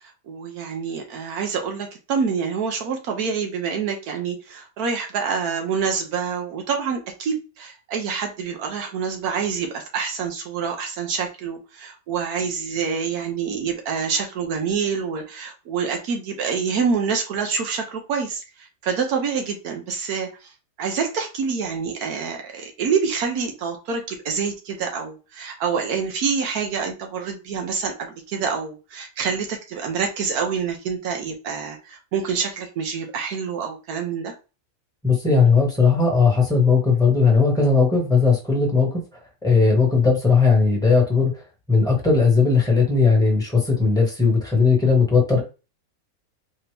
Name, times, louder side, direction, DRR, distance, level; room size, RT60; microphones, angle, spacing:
voice 1, 0.3-20.5 20.8-34.3, right 6 dB, 85° right, 3 dB, 1.3 m, -27 dB
voice 2, 35.0-39.0 39.4-41.3 41.7-45.4, left 4 dB, 5° left, -1 dB, 1.4 m, -18 dB
4.1 x 2.7 x 3.3 m, 0.31 s
omnidirectional pair, 1.6 m